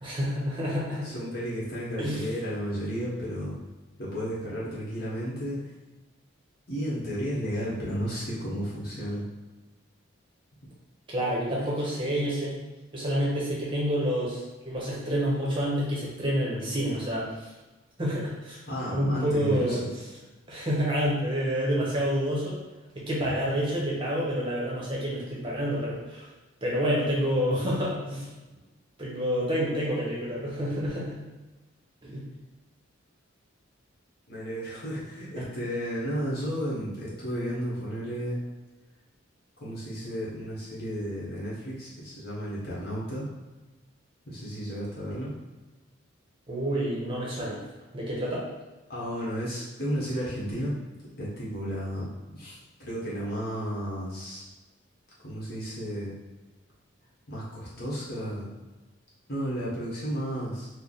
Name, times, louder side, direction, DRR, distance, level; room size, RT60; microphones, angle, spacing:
voice 1, 0.0-1.1 2.0-2.3 11.1-12.6 12.9-17.5 18.0-18.6 18.9-19.8 20.5-22.6 23.0-26.3 26.6-28.3 29.0-31.1 32.0-32.2 35.4-35.5 46.5-47.6 47.9-48.5, equal, 25° right, -5 dB, 0.8 m, -28 dB
voice 2, 1.0-3.6 4.0-5.7 6.7-9.2 11.6-11.7 18.7-19.8 34.3-38.4 39.6-43.3 44.3-45.3 48.9-50.8 51.2-52.1 52.3-54.4 55.2-56.1 57.3-58.5 59.3-60.7, equal, 50° left, -6 dB, 1.1 m, -33 dB
3.3 x 2.1 x 4.0 m, 1.2 s
head